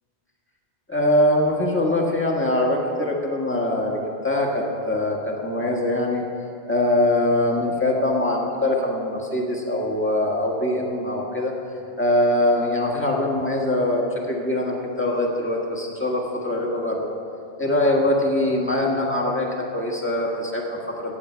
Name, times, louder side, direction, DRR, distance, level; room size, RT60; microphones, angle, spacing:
voice 1, 0.9-4.0 4.2-6.2 6.7-11.5 12.0-17.1 17.6-21.2, left 1 dB, 10° left, -2 dB, 1.5 m, -23 dB
15.0 x 9.3 x 4.5 m, 2.8 s
omnidirectional pair, 1.1 m